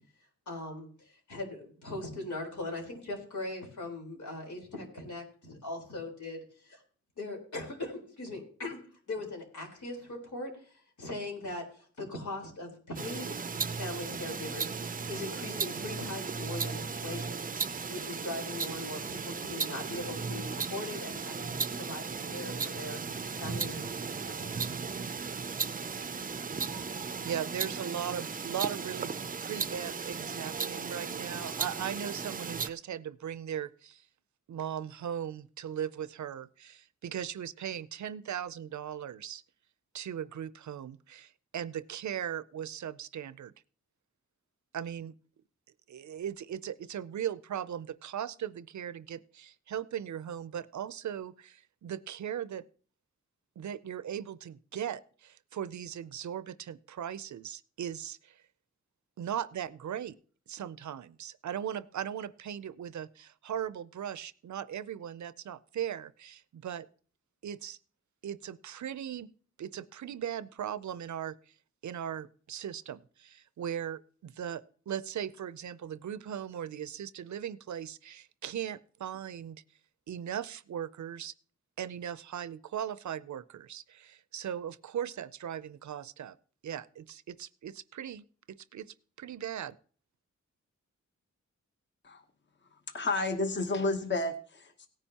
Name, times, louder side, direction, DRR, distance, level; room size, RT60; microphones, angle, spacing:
voice 1, 0.5-6.8 7.2-13.4 13.8-17.5 17.9-23.0 23.4-24.5, left 2 dB, 85° left, 1 dB, 4.2 m, -40 dB
sound 1, 13.0-32.7, right 5 dB, 30° right, 0.5 m, -36 dB
voice 2, 27.2-29.1 29.4-34.1 34.5-39.4 39.9-43.5 44.7-45.1 45.9-52.6 53.6-58.4 59.2-60.2 60.5-66.9 67.4-67.8 68.2-69.3 69.6-71.5 71.8-79.6 80.1-81.3 81.8-86.4 86.6-89.8, right 9 dB, 75° right, 17 dB, 0.5 m, -38 dB
voice 3, 92.7-94.9, left 2 dB, 40° left, 6 dB, 1.0 m, -31 dB
17.5 x 10.0 x 2.9 m, 0.43 s
wide cardioid pair, 120°, 29 cm